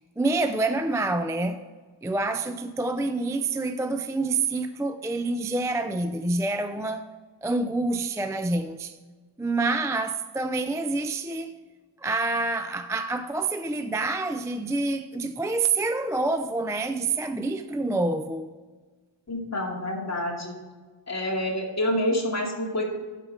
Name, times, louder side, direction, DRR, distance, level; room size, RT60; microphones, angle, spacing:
voice 1, 0.2-1.6 2.0-7.1 7.4-9.0 9.4-11.5 12.0-18.5, right 3 dB, 5° right, 0.4 m, -27 dB
voice 2, 19.3-20.6 21.1-22.8, left 1 dB, 35° left, 2.4 m, -27 dB
12.0 x 5.0 x 4.9 m
wide cardioid pair, 100°, 46 cm